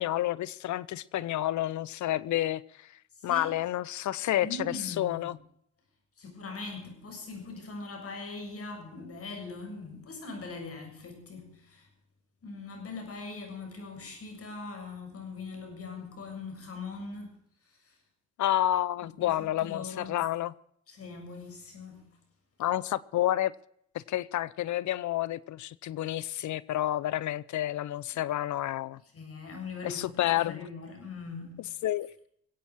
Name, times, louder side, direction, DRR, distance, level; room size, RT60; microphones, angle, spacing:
voice 1, 0.0-2.9 3.2-5.4 18.4-20.5 22.6-23.5 23.9-29.0 29.8-30.7 31.8-32.3, left 13 dB, 70° left, 0.8 m, -30 dB
voice 2, 3.2-3.5 4.4-5.3 6.2-11.9 12.4-17.3 17.8-17.9 19.0-20.2 20.9-22.1 28.1-28.3 29.1-31.6, left 3 dB, 50° left, 7.3 m, -41 dB
23.0 x 8.8 x 6.3 m
cardioid pair, 90°, 30 cm